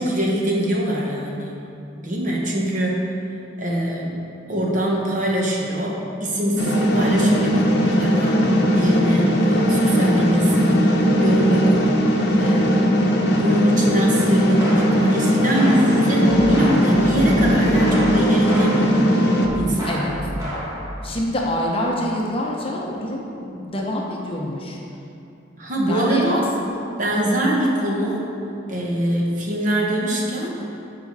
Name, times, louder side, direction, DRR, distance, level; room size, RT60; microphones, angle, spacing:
voice 1, 0.0-1.6 2.0-3.1 3.6-4.2 4.5-11.8 12.3-12.9 13.3-19.1 19.5-20.0 25.6-26.4 27.0-28.2 28.7-30.5, right 1 dB, 40° right, -2 dB, 1.1 m, -23 dB
sound 1, 6.6-19.5, equal, 55° left, 0.8 m, -18 dB
sound 2, 14.6-15.1 15.6-19.0 19.4-20.9, equal, 15° right, 1.9 m, -30 dB
voice 2, 21.0-24.8 25.9-26.9 27.2-27.6, equal, 30° left, -2 dB, 0.8 m, -26 dB
10.0 x 5.0 x 4.1 m, 2.8 s
head